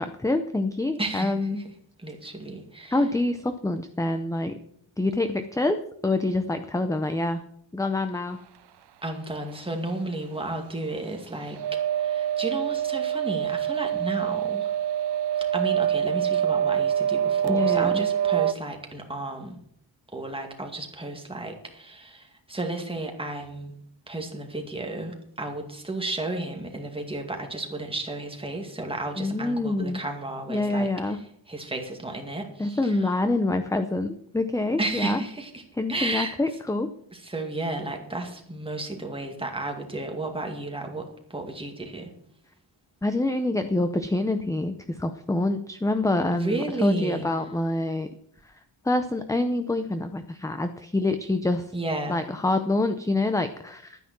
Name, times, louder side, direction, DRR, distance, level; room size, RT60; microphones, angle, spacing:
voice 1, 0.0-1.6 2.9-4.6 5.0-7.4 7.7-8.4 17.5-17.9 29.2-30.0 30.5-31.2 32.6-35.2 35.8-36.9 43.0-48.1 48.8-51.7 52.1-54.0, left 2 dB, 5° left, 9 dB, 0.6 m, -26 dB
voice 2, 1.0-1.7 2.0-3.1 9.0-14.7 15.3-19.6 20.1-23.7 24.1-33.1 34.8-35.6 35.9-36.4 37.1-42.1 46.3-47.3 51.7-52.2, right 2 dB, 10° right, 2 dB, 2.2 m, -33 dB
sound 1, 11.6-18.5, right 10 dB, 60° right, 0.7 m, -25 dB
12.0 x 9.6 x 6.0 m, 0.69 s
wide cardioid pair, 170°, 46 cm